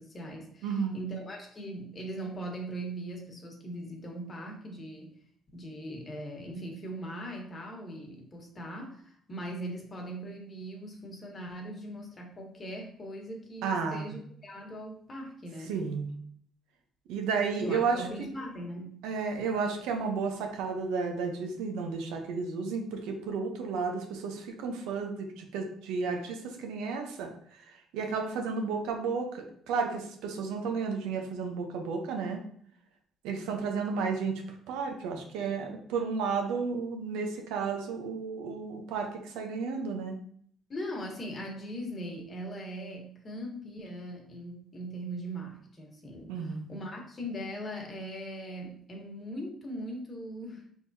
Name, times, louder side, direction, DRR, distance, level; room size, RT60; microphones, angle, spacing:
voice 1, 0.0-5.1 5.5-15.8 17.6-19.0 40.7-50.6, right 1 dB, 40° left, 0 dB, 1.4 m, -40 dB
voice 2, 0.6-1.0 13.6-14.1 15.7-16.1 17.1-18.3 19.0-27.3 27.9-32.4 33.2-34.4 34.7-40.2 46.3-46.7, right 5 dB, 85° right, 3 dB, 0.8 m, -32 dB
4.7 x 3.6 x 2.8 m, 0.62 s
supercardioid pair, 70°, 0 cm